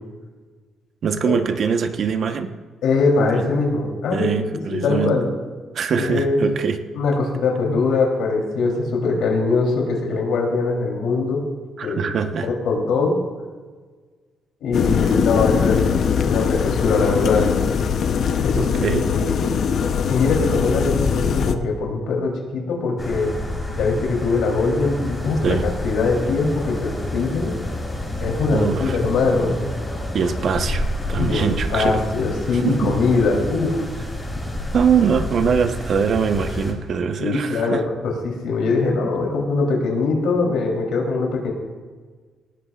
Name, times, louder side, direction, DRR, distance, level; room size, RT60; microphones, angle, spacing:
voice 1, 1.0-2.5 3.3-3.5 4.1-5.2 5.7-6.8 11.8-12.5 18.6-19.1 25.4-25.7 28.5-29.0 30.1-30.8 31.1-32.0 32.5-32.9 34.7-37.8, right 6 dB, 60° right, 7 dB, 1.1 m, -22 dB
voice 2, 2.8-5.3 6.0-6.4 6.9-11.5 11.8-12.1 12.5-13.2 14.6-15.9 16.2-17.5 18.4-19.5 20.1-23.3 23.7-27.6 28.2-29.6 31.2-33.9 37.2-41.5, left 3 dB, 85° left, -1 dB, 3.4 m, -22 dB
sound 1, 14.7-21.5, left 6 dB, 65° left, 0.8 m, -21 dB
sound 2, 23.0-36.7, left 1 dB, 15° left, 4.3 m, -29 dB
19.0 x 18.0 x 2.5 m, 1.5 s
cardioid pair, 90°, 0 cm